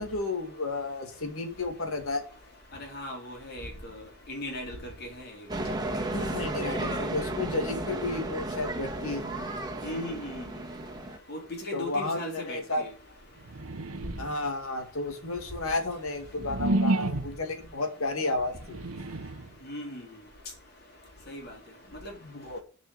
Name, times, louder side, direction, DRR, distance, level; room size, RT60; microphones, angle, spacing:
voice 1, 0.0-2.2 6.1-9.3 11.7-12.8 14.2-19.0 22.2-22.6, left 2 dB, 75° left, 2.2 m, -32 dB
voice 2, 2.8-4.0 4.3-4.9 9.8-10.4 11.3-12.9 19.6-20.0 21.3-21.5 22.0-22.1, left 1 dB, 50° left, 3.9 m, -37 dB
sound 1, 5.5-11.2, right 1 dB, 20° right, 1.6 m, -33 dB
sound 2, 13.4-14.5 15.1-17.5 18.5-19.5, right 2 dB, 85° right, 0.9 m, -31 dB
9.9 x 5.3 x 7.7 m
head